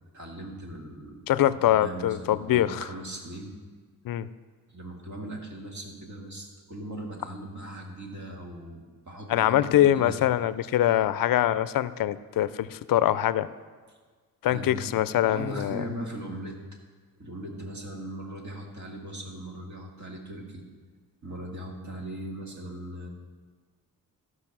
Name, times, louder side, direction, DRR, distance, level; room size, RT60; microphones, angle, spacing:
voice 1, 0.1-3.5 4.7-10.2 14.4-15.0 15.2-16.6 17.2-20.6 21.2-23.1, right 1 dB, 50° right, 0 dB, 2.3 m, -39 dB
voice 2, 1.3-2.8 4.0-4.3 9.3-13.5 14.4-15.8, left 12 dB, 70° left, 16 dB, 0.5 m, -23 dB
14.0 x 6.2 x 6.0 m, 1.5 s
cardioid pair, 85°, 35 cm